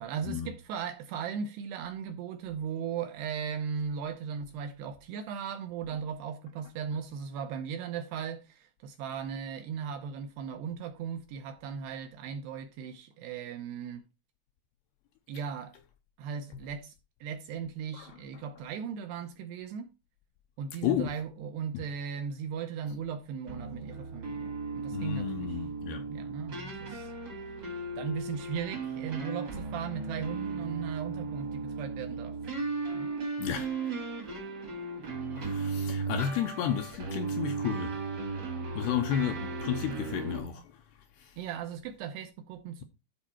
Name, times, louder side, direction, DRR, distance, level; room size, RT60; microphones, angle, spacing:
voice 1, 0.0-14.0 15.3-15.8 16.2-16.9 17.2-19.9 20.6-25.6 26.1-27.1 27.6-27.7 28.0-32.4 32.9-33.1 41.4-42.8, right 7 dB, 75° right, 2.5 m, -37 dB
voice 2, 17.9-18.4 20.8-21.1 21.7-21.8 24.9-26.1 33.4-33.7 35.4-38.0 38.8-40.8 41.2-41.4, left 9 dB, 80° left, 2.5 m, -32 dB
sound 1, 23.5-40.4, right 4 dB, 45° right, 1.3 m, -36 dB
12.5 x 4.5 x 4.4 m
omnidirectional pair, 5.5 m